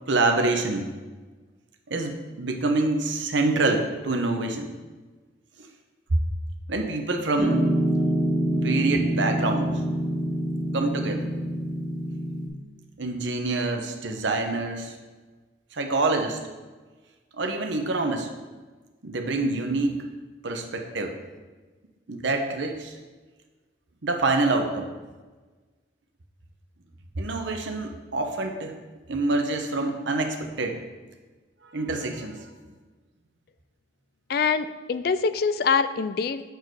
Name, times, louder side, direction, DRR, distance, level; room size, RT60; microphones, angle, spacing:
voice 1, 0.1-0.9 1.9-4.7 6.1-6.2 6.7-7.7 8.5-9.7 10.7-11.3 13.0-14.9 15.7-16.4 17.4-18.3 19.0-20.0 20.4-21.2 22.1-22.9 24.0-24.9 27.2-28.7 29.1-30.8 31.7-32.4, right 2 dB, 85° right, 5 dB, 0.9 m, -26 dB
Piano, 7.4-12.5, equal, 10° right, 1.8 m, -26 dB
voice 2, 34.3-36.4, left 5 dB, 55° left, 13 dB, 0.3 m, -24 dB
8.1 x 4.5 x 4.7 m, 1.3 s
head